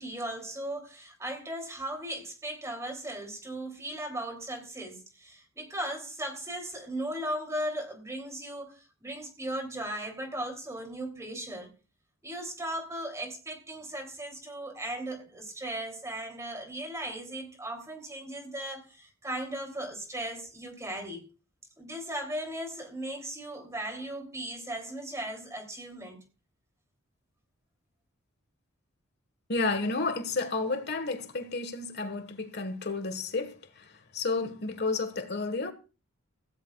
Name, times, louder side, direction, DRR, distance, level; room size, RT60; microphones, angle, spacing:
voice 1, 0.0-11.7 12.2-21.3 21.8-26.2, right 1 dB, 15° right, 3.2 m, -37 dB
voice 2, 29.5-35.7, left 3 dB, 50° left, 1.6 m, -31 dB
17.0 x 15.5 x 2.4 m
head